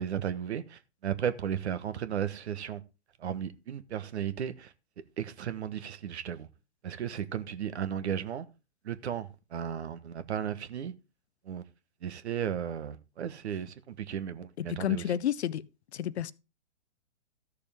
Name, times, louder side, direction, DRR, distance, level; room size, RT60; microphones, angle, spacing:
voice 1, 0.0-2.8 3.2-4.7 5.2-6.5 6.8-8.5 8.8-10.9 11.4-11.6 12.0-15.0, right 9 dB, 65° right, 1.2 m, -35 dB
voice 2, 14.6-15.7 15.9-16.3, left 11 dB, 60° left, 0.7 m, -30 dB
14.0 x 6.7 x 3.5 m
hypercardioid pair, 125°, 36 cm